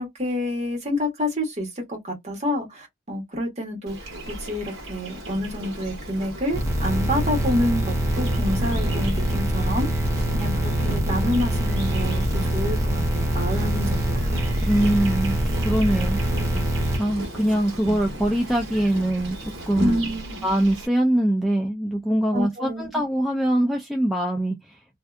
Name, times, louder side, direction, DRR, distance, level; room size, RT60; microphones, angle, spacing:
voice 1, 0.0-4.1 4.4-10.1 10.3-14.2 19.8-20.4 22.3-22.9, left 1 dB, 35° right, 1.3 m, -28 dB
Insect, 3.9-20.9, right 1 dB, 55° right, 1.3 m, -35 dB
sound 1, 6.5-17.0, right 1 dB, 15° right, 0.7 m, -24 dB
voice 2, 14.6-16.2 17.0-19.9 20.4-24.6, right 1 dB, ahead, 0.3 m, -23 dB
2.6 x 2.2 x 2.3 m
head